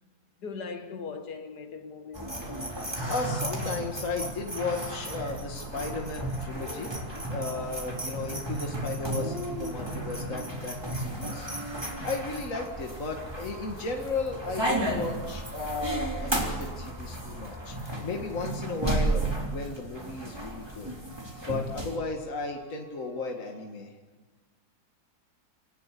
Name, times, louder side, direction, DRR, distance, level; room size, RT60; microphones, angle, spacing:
voice 1, 0.4-2.4, left 5 dB, 75° left, 2.2 m, -39 dB
sound 1, 2.1-22.0, right 1 dB, 15° right, 3.3 m, -33 dB
voice 2, 3.0-6.9 7.3-11.5 12.0-21.0 21.4-23.9, left 3 dB, 50° left, 2.3 m, -35 dB
sound 2, 5.3-13.7 16.1-23.8, right 1 dB, 65° right, 7.6 m, -54 dB
28.5 x 18.5 x 8.4 m
omnidirectional pair, 1.8 m